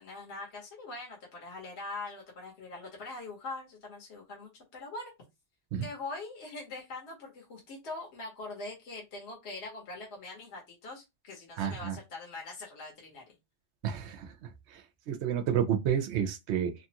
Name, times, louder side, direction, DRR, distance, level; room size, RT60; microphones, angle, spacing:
voice 1, 0.0-5.1 5.8-13.2, left 3 dB, 60° left, 1.2 m, -42 dB
voice 2, 11.6-12.0 13.8-14.3 14.7-14.8 15.1-16.7, right 8 dB, 65° right, 0.8 m, -30 dB
3.0 x 2.4 x 2.8 m
omnidirectional pair, 1.3 m